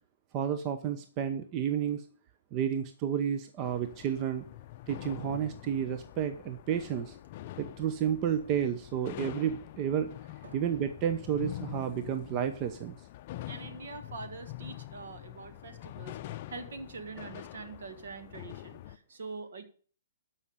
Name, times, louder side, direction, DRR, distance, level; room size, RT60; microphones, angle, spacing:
voice 1, 0.3-2.1 2.5-4.4 4.9-7.2 7.6-10.1 10.5-13.0, right 8 dB, 30° right, 10 dB, 0.8 m, -31 dB
sound 1, 3.6-19.0, left 15 dB, 40° left, 0.5 m, -45 dB
voice 2, 13.5-19.6, right 4 dB, 65° right, 8 dB, 1.7 m, -44 dB
12.5 x 5.7 x 6.5 m, 0.43 s
figure-of-eight pair, 125°, 0 cm